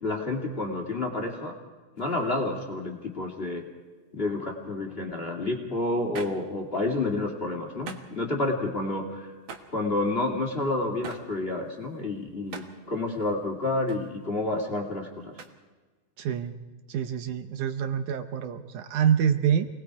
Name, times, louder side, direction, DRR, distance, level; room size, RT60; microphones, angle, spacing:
voice 1, 0.0-1.5 2.0-3.6 4.1-9.3 9.7-15.3, left 2 dB, 20° left, 1 dB, 1.8 m, -29 dB
sound 1, 2.0-2.7 6.1-7.3 7.6-8.2 8.8-8.9 9.3-15.0 15.3-15.5, right 5 dB, 55° right, 1.4 m, -46 dB
voice 2, 16.2-16.6 16.9-19.7, right 8 dB, 70° right, 8 dB, 2.0 m, -26 dB
28.0 x 19.5 x 4.8 m, 1.3 s
omnidirectional pair, 4.2 m